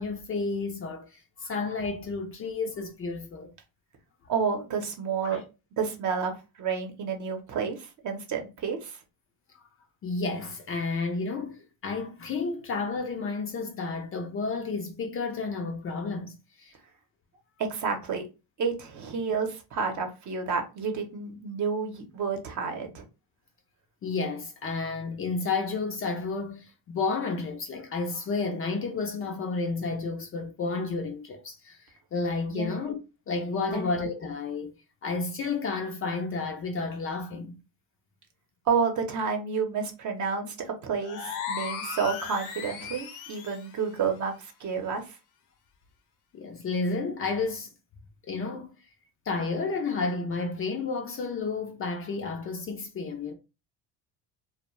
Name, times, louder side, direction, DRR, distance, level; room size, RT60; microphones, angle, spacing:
voice 1, 0.0-3.5 5.2-5.4 9.5-9.6 10.0-16.7 24.0-33.0 33.3-34.7 35.0-37.6 46.3-47.7 48.3-48.8 49.3-53.3, left 4 dB, 35° left, 0.4 m, -31 dB
voice 2, 4.3-5.4 5.8-6.3 6.6-9.0 17.6-18.2 18.6-23.1 32.5-32.8 33.7-33.9 38.7-45.2, right 5 dB, 45° right, 0.8 m, -30 dB
sound 1, 41.0-43.7, left 7 dB, 75° left, 0.8 m, -36 dB
2.2 x 2.1 x 3.1 m
supercardioid pair, 100°, 41 cm